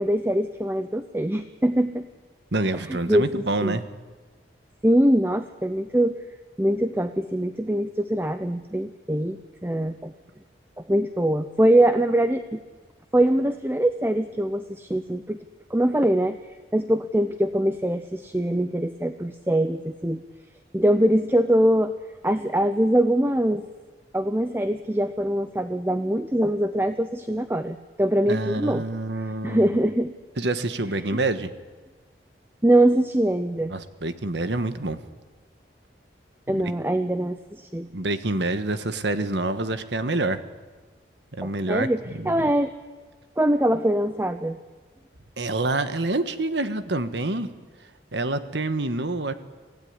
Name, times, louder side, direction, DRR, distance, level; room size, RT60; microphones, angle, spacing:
voice 1, 0.0-2.1 2.9-3.8 4.8-6.2 6.6-10.1 10.8-12.6 13.1-15.4 15.7-20.2 20.7-21.9 22.2-23.6 24.1-28.8 29.4-30.1 31.0-31.2 32.6-33.7 36.5-37.9 41.4-42.0 42.3-42.7 43.4-44.6, right 1 dB, 10° right, 10 dB, 0.7 m, -23 dB
voice 2, 2.5-3.8 28.3-29.6 30.4-31.5 33.7-35.0 36.5-36.7 37.9-40.4 41.4-42.5 45.4-47.5 48.1-49.3, right 2 dB, 75° right, 11 dB, 1.4 m, -27 dB
25.0 x 16.0 x 9.8 m, 1.3 s
head